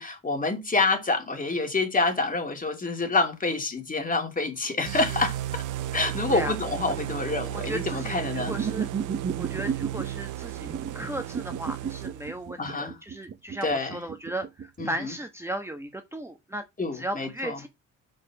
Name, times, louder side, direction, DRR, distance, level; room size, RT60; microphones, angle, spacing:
voice 1, 0.0-5.6 5.9-8.5 12.6-13.0 13.6-14.0 14.8-15.1 16.8-17.6, left 3 dB, 25° left, 2.8 m, -27 dB
sound 1, 4.9-12.5, right 13 dB, 85° right, 1.0 m, -34 dB
voice 2, 7.6-8.9 9.4-16.6 16.9-17.7, right 1 dB, 10° right, 1.3 m, -36 dB
sound 2, 8.4-10.1 10.6-14.9, right 6 dB, 35° right, 1.0 m, -33 dB
6.8 x 5.1 x 5.9 m
cardioid pair, 90°, 30 cm